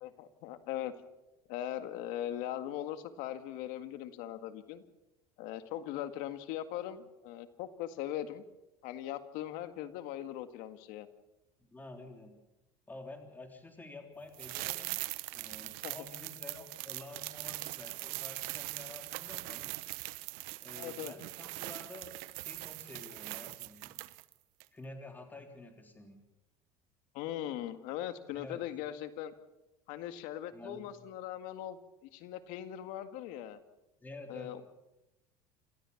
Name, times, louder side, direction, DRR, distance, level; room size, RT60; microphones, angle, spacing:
voice 1, 0.0-0.9 1.5-4.8 5.4-8.4 8.8-11.1 15.8-15.9 20.8-21.1 27.1-29.3 29.9-31.8 32.1-33.6 34.3-34.6, left 12 dB, 70° left, 10 dB, 1.9 m, -40 dB
voice 2, 11.7-12.4 12.9-15.0 15.3-19.8 20.6-24.0 24.7-26.2 28.3-28.7 30.5-30.9 34.0-34.6, left 2 dB, 10° left, 4 dB, 3.7 m, -49 dB
sound 1, 14.3-24.3 24.6-24.7, right 22 dB, 75° right, 0.9 m, -41 dB
27.5 x 14.0 x 7.2 m, 0.98 s
supercardioid pair, 125°, 14 cm